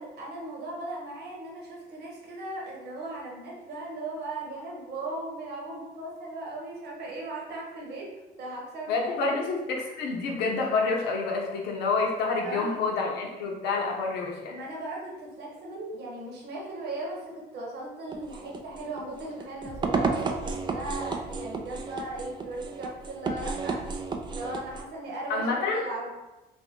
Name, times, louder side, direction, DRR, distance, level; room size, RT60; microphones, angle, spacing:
voice 1, 0.0-8.1 8.4-9.4 12.4-12.9 14.5-23.8 24.3-26.1, right 2 dB, 75° right, -2 dB, 1.1 m, -37 dB
voice 2, 8.9-14.5 25.3-25.8, left 4 dB, 85° left, 0 dB, 0.7 m, -28 dB
sound 1, 18.1-24.8, right 4 dB, 25° right, 0.3 m, -32 dB
2.6 x 2.6 x 3.6 m, 1.0 s
cardioid pair, 110°, 17 cm